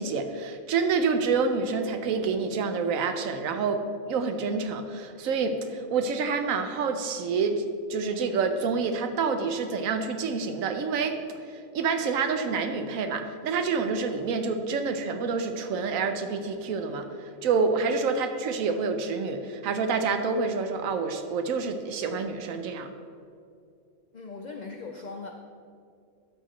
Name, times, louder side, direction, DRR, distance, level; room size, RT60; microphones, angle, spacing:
voice 1, 0.0-3.8 4.1-7.6 7.9-11.2 11.4-22.9, right 5 dB, 75° right, 7 dB, 1.1 m, -28 dB
voice 2, 24.1-25.3, left 4 dB, 85° left, 3 dB, 0.4 m, -39 dB
12.0 x 6.0 x 3.1 m, 2.3 s
omnidirectional pair, 1.5 m